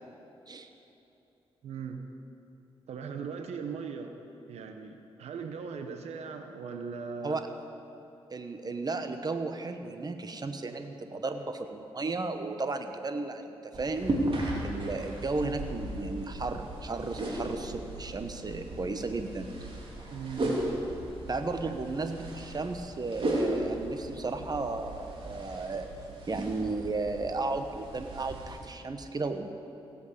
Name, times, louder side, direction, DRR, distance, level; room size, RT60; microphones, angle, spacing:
voice 1, 1.6-2.0 2.9-4.1 4.5-7.4 20.1-20.5 21.6-21.8, right 5 dB, 90° right, 6 dB, 1.0 m, -39 dB
voice 2, 8.3-13.5 13.8-14.3 14.6-19.7 21.3-25.9 26.3-29.5, right 3 dB, 40° right, 7 dB, 1.2 m, -34 dB
sound 1, 13.7-28.6, right 1 dB, 55° right, 3.2 m, -36 dB
16.5 x 8.2 x 8.2 m, 2.9 s
cardioid pair, 60°, 11 cm